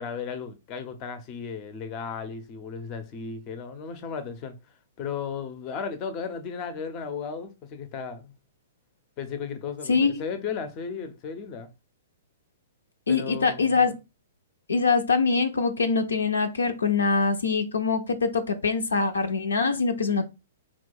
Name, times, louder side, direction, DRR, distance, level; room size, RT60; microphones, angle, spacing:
voice 1, 0.0-4.6 5.0-8.3 9.2-11.7 13.1-13.8, left 6 dB, 35° left, 0.7 m, -35 dB
voice 2, 13.1-13.9 14.7-20.2, left 4 dB, 75° left, 0.6 m, -23 dB
4.3 x 2.3 x 4.2 m
figure-of-eight pair, 115°, 0 cm